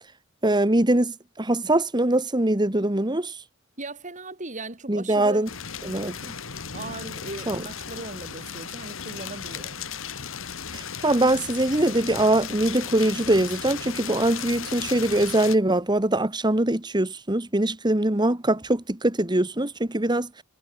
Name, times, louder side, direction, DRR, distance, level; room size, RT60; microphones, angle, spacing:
voice 1, 0.4-3.4 4.9-5.5 5.8-6.3 7.5-7.6 10.7-20.4, right 1 dB, 20° right, 1.6 m, -23 dB
voice 2, 3.8-5.5 6.7-9.9, right 2 dB, 35° right, 4.3 m, -38 dB
sound 1, 5.5-15.6, left 7 dB, 65° left, 2.3 m, -36 dB
head